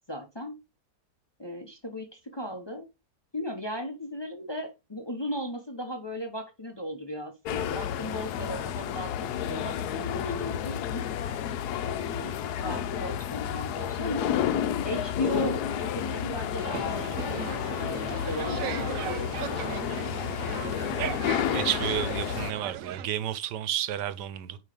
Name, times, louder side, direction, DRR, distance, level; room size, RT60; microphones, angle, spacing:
voice 1, 0.1-0.6 1.4-2.9 3.3-11.0 11.8-14.3 14.8-20.3 20.6-21.0, equal, 20° left, 0.8 m, -37 dB
sound 1, 7.4-22.5, left 9 dB, 75° left, 1.1 m, -31 dB
sound 2, 16.6-23.1, right 10 dB, 65° right, 0.9 m, -37 dB
voice 2, 21.5-24.6, right 11 dB, 85° right, 1.3 m, -31 dB
8.9 x 3.2 x 5.0 m
omnidirectional pair, 1.8 m